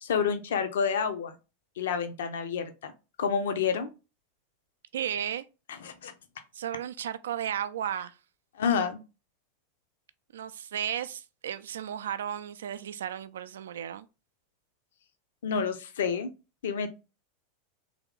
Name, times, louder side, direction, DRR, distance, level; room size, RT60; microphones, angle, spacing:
voice 1, 0.0-1.3 1.8-2.9 3.2-3.9 5.8-6.1 8.6-9.0 15.4-16.3 16.6-16.9, left 6 dB, 65° left, 0.6 m, -29 dB
voice 2, 4.9-5.4 6.5-8.1 10.3-14.1, right 9 dB, 65° right, 0.3 m, -34 dB
3.4 x 3.0 x 3.6 m
figure-of-eight pair, 85°, 0 cm